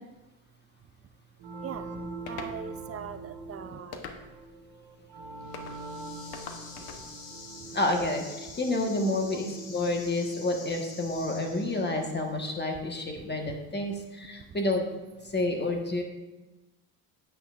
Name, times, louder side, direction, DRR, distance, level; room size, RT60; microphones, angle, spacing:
sound 1, 1.4-11.8, right 2 dB, 70° right, 1.6 m, -44 dB
voice 1, 1.6-4.0 5.5-5.7 6.3-6.4 6.8-7.2 7.6-7.8 9.3-9.4 14.5-14.6, right 8 dB, 35° right, 10 dB, 0.6 m, -42 dB
sound 2, 2.3-2.6 3.9-4.5 5.5-5.8 6.3-7.0, left 6 dB, 60° left, 1.0 m, -42 dB
sound 3, 5.4-12.1, left 4 dB, 80° left, 1.9 m, -47 dB
voice 2, 7.7-14.9 15.2-16.0, left 2 dB, 25° left, 3 dB, 1.4 m, -29 dB
9.5 x 8.4 x 2.5 m, 1.1 s
supercardioid pair, 85°, 42 cm